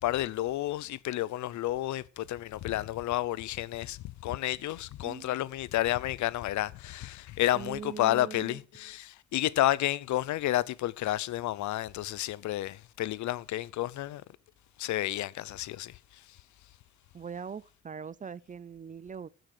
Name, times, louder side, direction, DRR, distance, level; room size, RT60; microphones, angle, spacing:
voice 1, 0.0-14.2 14.8-16.2, left 14 dB, 70° left, 0.6 m, -31 dB
voice 2, 5.0-5.4 7.5-8.6 17.1-19.3, right 6 dB, 25° right, 0.4 m, -41 dB
15.5 x 6.1 x 4.8 m
cardioid pair, 90°, 30 cm